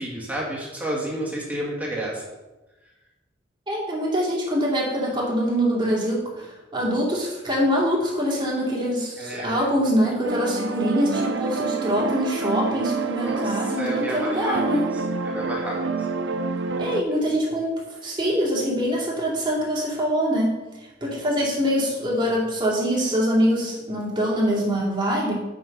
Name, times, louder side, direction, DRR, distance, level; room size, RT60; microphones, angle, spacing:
voice 1, 0.0-2.2 9.2-9.7 13.2-14.9 15.2-16.1, right 1 dB, 10° right, -4 dB, 2.3 m, -31 dB
voice 2, 3.7-14.9 16.8-17.7 18.0-20.6 21.0-25.4, equal, 25° right, -4 dB, 2.7 m, -24 dB
sound 1, 10.2-17.0, right 4 dB, 65° right, 0.6 m, -28 dB
6.8 x 6.6 x 5.3 m, 1.1 s
head